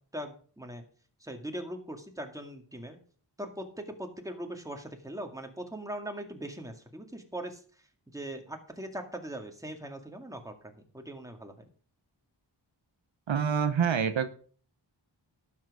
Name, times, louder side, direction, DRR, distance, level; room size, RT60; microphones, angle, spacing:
voice 1, 0.1-0.8 1.2-3.0 3.4-11.5, right 1 dB, 5° right, 4 dB, 2.1 m, -40 dB
voice 2, 13.3-14.3, right 7 dB, 75° right, 10 dB, 0.9 m, -26 dB
12.0 x 7.7 x 4.9 m, 0.44 s
wide cardioid pair, 60°, 46 cm